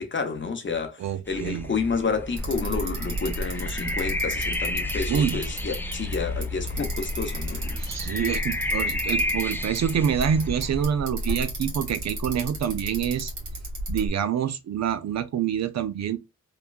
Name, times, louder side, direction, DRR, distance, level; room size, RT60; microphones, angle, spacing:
voice 1, 0.0-7.8, left 5 dB, 40° left, 0.8 m, -30 dB
voice 2, 1.0-1.7 5.1-5.4 7.8-13.3 13.9-16.2, right 8 dB, 60° right, 0.5 m, -26 dB
sound 1, 1.3-10.9, left 1 dB, 5° left, 0.4 m, -32 dB
Bicycle, 2.4-14.1, equal, 75° right, 1.5 m, -33 dB
3.2 x 2.2 x 2.4 m
cardioid pair, 70°, 30 cm